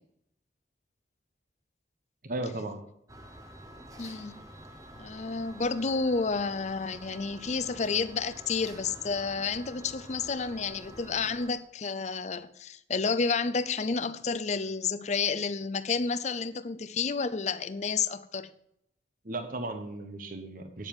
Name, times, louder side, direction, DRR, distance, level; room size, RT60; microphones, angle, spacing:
voice 1, 2.2-2.8 19.2-20.9, right 2 dB, 50° right, 1.2 m, -36 dB
sound 1, 3.1-11.5, right 1 dB, 20° right, 1.1 m, -48 dB
voice 2, 4.0-4.4 5.0-18.5, left 4 dB, 40° left, 0.6 m, -30 dB
9.3 x 7.7 x 7.3 m
head